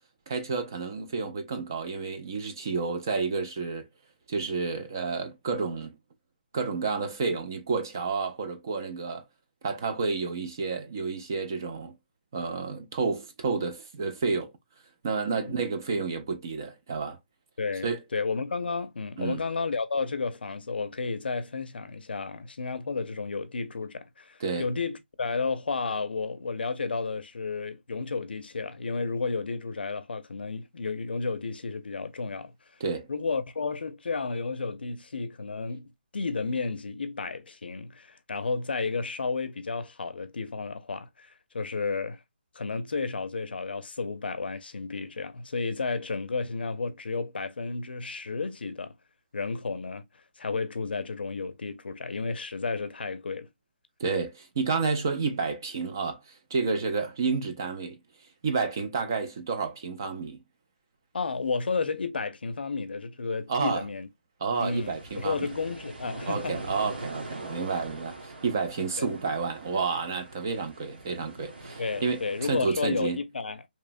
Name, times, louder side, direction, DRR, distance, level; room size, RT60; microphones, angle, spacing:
voice 1, 0.3-3.9 4.3-6.0 6.5-9.2 9.6-12.0 12.3-14.5 15.0-17.2 17.8-18.0 19.2-19.4 24.4-24.7 32.8-33.1 54.0-56.2 56.5-58.0 58.4-60.4 63.5-63.8 64.4-65.5 66.3-73.2, right 4 dB, 20° right, 0.3 m, -30 dB
voice 2, 17.6-32.5 33.1-42.2 42.5-48.9 49.3-50.0 50.4-53.5 61.1-64.1 64.6-66.6 69.0-69.1 71.8-73.6, left 4 dB, 70° left, 0.5 m, -32 dB
sound 1, 64.5-72.6, right 2 dB, 75° right, 1.2 m, -42 dB
2.9 x 2.1 x 2.5 m
hypercardioid pair, 175°, 6 cm